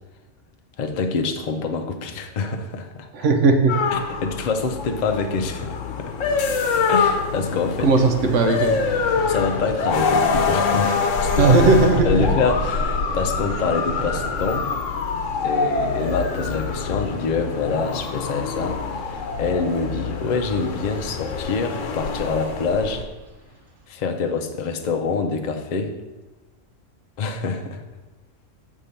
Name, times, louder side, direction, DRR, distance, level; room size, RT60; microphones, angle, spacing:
voice 1, 0.8-3.1 3.9-6.1 6.9-7.9 9.3-11.6 12.0-14.7 15.4-23.0 23.9-25.9 27.2-27.8, left 4 dB, 50° left, 4 dB, 0.6 m, -26 dB
voice 2, 3.1-3.8 7.8-8.8 11.4-12.1, right 3 dB, 75° right, 5 dB, 1.0 m, -17 dB
sound 1, 3.7-23.0, left 5 dB, 80° left, 1.0 m, -25 dB
Vehicle, 7.6-23.8, right 4 dB, 50° right, 0.8 m, -37 dB
6.6 x 3.7 x 5.6 m, 1.1 s
omnidirectional pair, 1.3 m